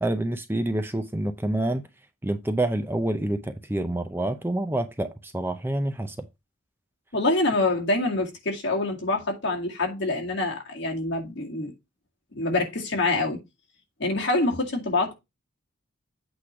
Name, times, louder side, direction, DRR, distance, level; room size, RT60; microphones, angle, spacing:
voice 1, 0.0-1.8 2.2-6.2, right 1 dB, 10° right, 0.5 m, -27 dB
voice 2, 7.1-11.7 12.3-13.4 14.0-15.1, left 2 dB, 55° left, 2.1 m, -26 dB
8.4 x 3.2 x 5.7 m
head